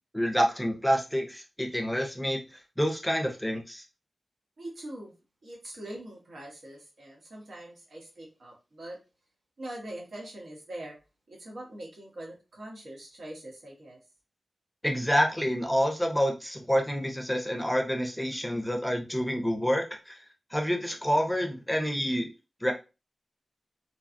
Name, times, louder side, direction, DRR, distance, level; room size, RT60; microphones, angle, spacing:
voice 1, 0.1-3.8 14.8-20.2 20.5-22.3 22.6-22.7, equal, 5° left, 3 dB, 0.6 m, -28 dB
voice 2, 4.6-5.1 5.4-9.0 9.6-11.0 11.3-14.0, right 1 dB, 85° right, -2 dB, 1.2 m, -43 dB
3.2 x 2.3 x 2.5 m, 0.29 s
wide cardioid pair, 100°, 0 cm